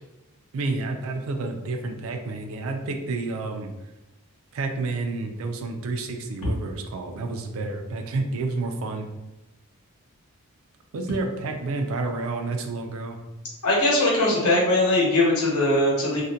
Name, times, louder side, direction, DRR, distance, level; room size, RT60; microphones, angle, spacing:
voice 1, 0.5-3.7 4.5-9.1 10.9-13.2, right 3 dB, 65° right, 4 dB, 0.3 m, -30 dB
voice 2, 13.6-16.2, left 1 dB, 85° left, -4 dB, 0.9 m, -20 dB
2.4 x 2.1 x 2.7 m, 1.0 s
head